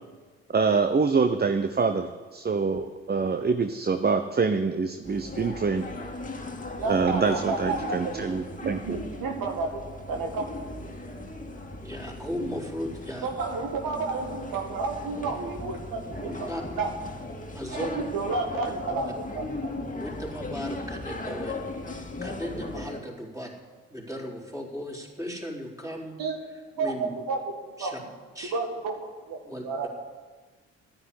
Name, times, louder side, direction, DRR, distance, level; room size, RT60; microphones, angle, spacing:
voice 1, 0.5-5.9 6.9-9.0, right 4 dB, 25° right, 8 dB, 0.9 m, -25 dB
sound 1, 5.0-23.0, left 2 dB, 20° left, 2.0 m, -37 dB
voice 2, 6.8-8.2 8.6-10.5 13.2-16.5 16.8-16.9 17.7-19.1 19.3-19.7 26.2-26.4 26.8-27.5 27.8-27.9 28.5-29.9, right 4 dB, 70° right, 2 dB, 2.0 m, -31 dB
voice 3, 11.8-13.3 16.2-16.6 17.5-18.0 20.0-23.5 23.9-26.1 26.8-27.2 27.8-28.0 28.3-28.5 29.4-29.9, equal, 10° right, -2 dB, 4.3 m, -36 dB
10.5 x 9.8 x 9.9 m, 1.4 s
hypercardioid pair, 45°, 36 cm